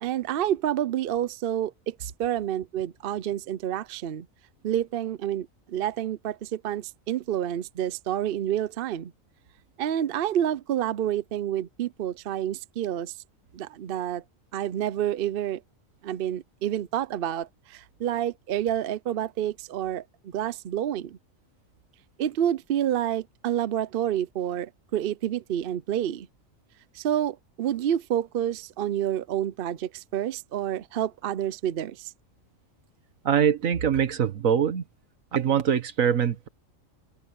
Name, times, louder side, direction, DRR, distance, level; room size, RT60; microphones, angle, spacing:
voice 1, 0.0-4.3 4.6-9.1 9.8-13.1 13.5-14.2 14.5-15.6 16.0-21.2 22.2-26.3 26.9-32.1, right 11 dB, 55° right, 0.7 m, -29 dB
voice 2, 33.2-34.8 35.3-36.5, right 8 dB, 80° right, 1.6 m, -23 dB
open air
omnidirectional pair, 1.4 m